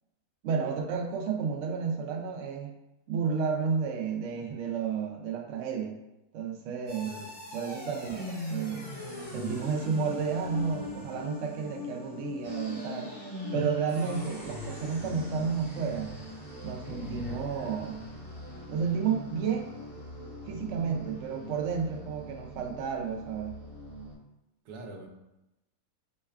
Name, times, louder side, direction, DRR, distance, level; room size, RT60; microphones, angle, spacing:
voice 1, 0.4-2.7 3.1-6.0 6.3-7.1 7.5-8.9 9.3-13.1 13.5-16.1 16.6-18.0 18.7-19.7 20.5-23.6, right 6 dB, 65° right, 1 dB, 0.8 m, -31 dB
sound 1, 6.9-24.2, left 1 dB, 40° left, 1.3 m, -40 dB
voice 2, 7.0-7.3 13.5-13.6 16.7-17.1 24.6-25.1, right 2 dB, 80° right, 2 dB, 1.1 m, -45 dB
5.4 x 2.2 x 2.3 m, 0.94 s
omnidirectional pair, 1.6 m